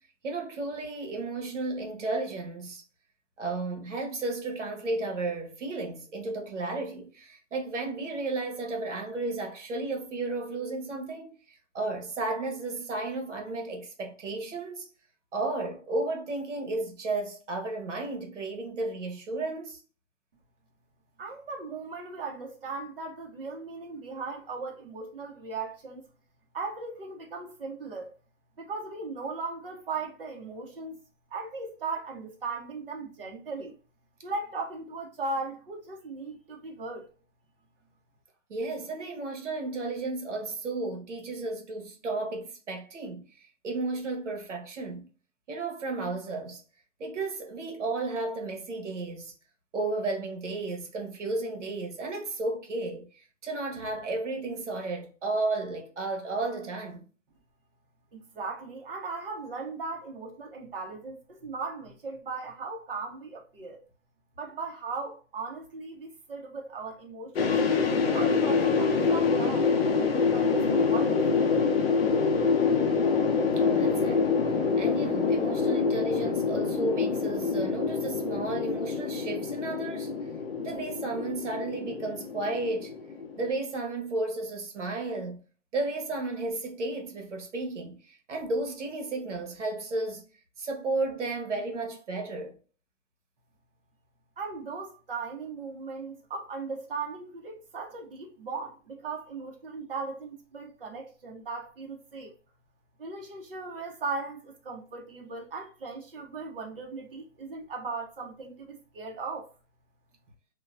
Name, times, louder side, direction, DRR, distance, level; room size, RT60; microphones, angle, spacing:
voice 1, 0.2-2.8 3.4-14.9 15.3-19.8 38.5-43.2 43.6-45.1 45.5-46.6 47.0-49.3 49.7-57.1 73.6-74.3 74.8-80.1 80.6-82.9 83.4-85.4 85.7-90.2 90.6-92.6, right 2 dB, 70° right, 1.1 m, -33 dB
voice 2, 21.2-26.0 26.5-28.1 28.6-31.0 31.3-33.8 34.2-37.1 58.1-63.8 64.4-67.6 68.0-71.6 94.4-102.3 103.0-109.5, right 4 dB, 50° right, 0.9 m, -38 dB
sound 1, 67.4-83.5, left 5 dB, 55° left, 0.6 m, -26 dB
2.8 x 2.3 x 2.3 m
hypercardioid pair, 180°, 37 cm